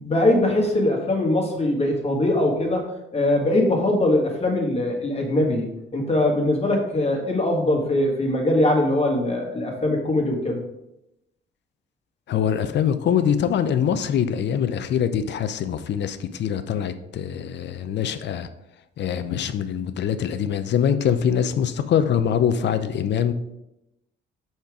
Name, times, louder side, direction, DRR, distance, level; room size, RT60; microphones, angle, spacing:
voice 1, 0.0-2.9 3.1-10.6, left 1 dB, 30° left, 1.7 m, -22 dB
voice 2, 12.3-18.5 19.0-23.3, left 8 dB, 60° left, 0.6 m, -23 dB
5.7 x 4.5 x 4.8 m
cardioid pair, 90°, 20 cm